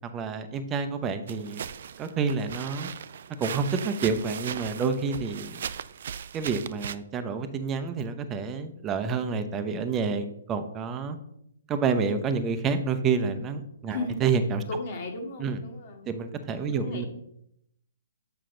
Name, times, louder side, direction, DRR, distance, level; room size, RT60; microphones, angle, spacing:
voice 1, 0.1-1.6 2.0-2.9 3.4-5.6 6.3-11.2 11.7-14.6 15.4-15.6 16.1-17.1, right 5 dB, 20° right, 8 dB, 0.7 m, -28 dB
sound 1, 1.3-7.0, right 8 dB, 60° right, 0.3 m, -38 dB
voice 2, 13.9-14.2 14.7-16.1 16.6-17.1, left 3 dB, 50° left, 3 dB, 1.6 m, -35 dB
7.5 x 5.7 x 3.8 m, 0.76 s
hypercardioid pair, 135°, 0 cm